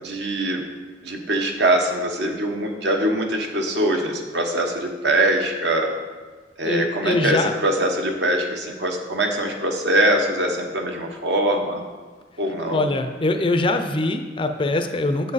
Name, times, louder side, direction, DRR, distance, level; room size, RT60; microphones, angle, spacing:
voice 1, 0.0-0.6 1.0-5.9 6.6-11.8 12.4-12.9, right 1 dB, 60° right, 2 dB, 1.1 m, -23 dB
voice 2, 6.6-7.5 12.7-15.3, left 2 dB, 25° left, 7 dB, 0.5 m, -23 dB
7.7 x 7.4 x 4.1 m, 1.4 s
head